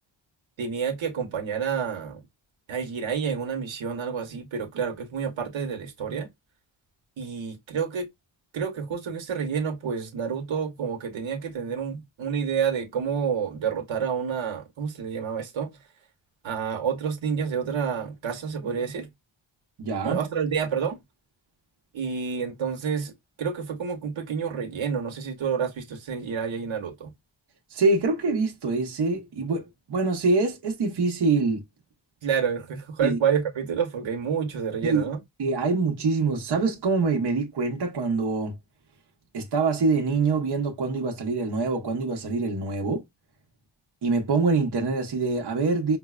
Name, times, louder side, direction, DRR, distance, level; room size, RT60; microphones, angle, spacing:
voice 1, 0.6-2.2 2.7-6.3 7.2-8.1 8.5-15.7 16.4-19.1 20.0-21.0 21.9-23.1 23.4-27.1 32.2-35.2, right 6 dB, 80° right, 1.1 m, -29 dB
voice 2, 19.8-20.2 27.7-31.6 33.0-33.2 34.8-35.1 35.4-38.5 39.3-43.0 44.0-46.0, right 3 dB, 55° right, 0.9 m, -25 dB
5.2 x 2.0 x 2.4 m
wide cardioid pair, 115°, 47 cm